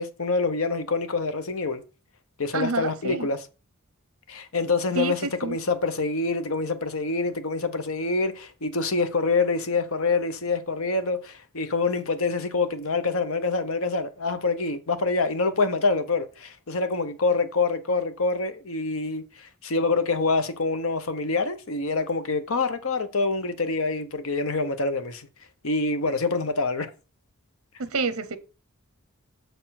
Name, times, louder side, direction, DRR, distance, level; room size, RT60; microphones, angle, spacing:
voice 1, 0.0-1.8 2.4-3.5 4.3-25.3 25.6-26.9, left 3 dB, 70° left, 1.0 m, -26 dB
voice 2, 2.5-3.3 5.0-5.1 5.4-5.6 27.8-28.4, right 4 dB, 70° right, 0.8 m, -28 dB
6.7 x 4.5 x 5.9 m
head